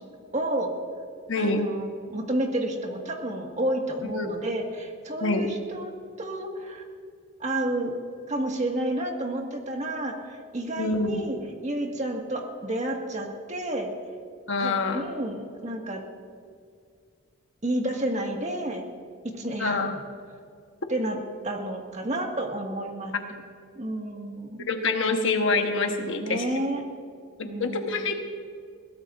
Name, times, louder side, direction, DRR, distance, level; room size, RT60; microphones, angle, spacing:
voice 1, 0.3-0.7 1.4-5.9 6.2-6.8 7.4-7.9 8.3-11.4 11.6-13.9 14.6-16.0 17.6-18.9 19.3-20.0 20.9-21.2 21.4-23.4 23.8-24.7 26.2-26.8 27.4-28.1, right 1 dB, 35° right, 1 dB, 1.8 m, -30 dB
voice 2, 1.3-1.7 4.0-4.3 5.2-5.5 10.8-11.2 14.5-15.0 19.6-19.9 23.1-23.2 24.7-26.5 27.4-28.1, left 3 dB, 60° left, 4 dB, 1.2 m, -26 dB
22.0 x 16.5 x 2.6 m, 2.2 s
head